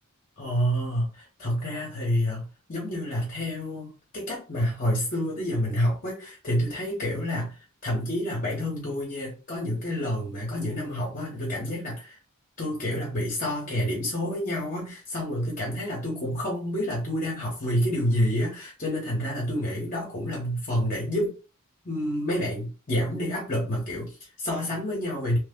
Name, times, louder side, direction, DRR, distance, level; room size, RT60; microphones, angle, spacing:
voice 1, 0.4-12.2 12.6-21.4 21.8-25.4, equal, 40° left, -3 dB, 1.0 m, -28 dB
3.1 x 2.2 x 3.6 m, 0.33 s
head